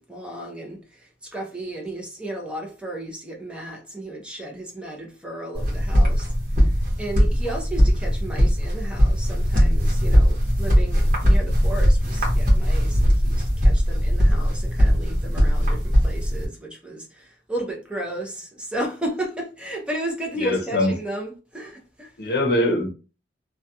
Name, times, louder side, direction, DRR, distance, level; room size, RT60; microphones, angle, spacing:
voice 1, 0.1-22.1, right 1 dB, 5° right, 0.5 m, -34 dB
sound 1, 5.5-16.5, equal, 50° right, 0.9 m, -19 dB
voice 2, 20.4-20.9 22.2-22.9, left 1 dB, 60° left, 0.7 m, -22 dB
2.3 x 2.2 x 2.7 m
head